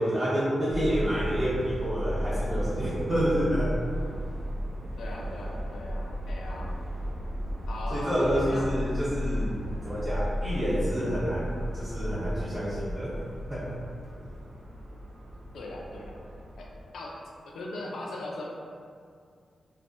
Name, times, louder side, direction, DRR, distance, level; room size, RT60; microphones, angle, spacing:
voice 1, 0.0-3.7 7.9-9.5 9.8-13.1 13.5-13.6, equal, 50° right, -12 dB, 1.4 m, -28 dB
Subway metro underground, 0.7-16.8, equal, 65° right, 0.4 m, -34 dB
voice 2, 5.0-6.8 7.7-8.1 8.5-8.7 9.2-9.6 15.5-16.2 16.6-16.7 16.9-17.2 17.4-18.4, left 2 dB, 80° left, -2 dB, 0.4 m, -39 dB
2.4 x 2.0 x 2.7 m, 2.2 s
supercardioid pair, 45°, 0 cm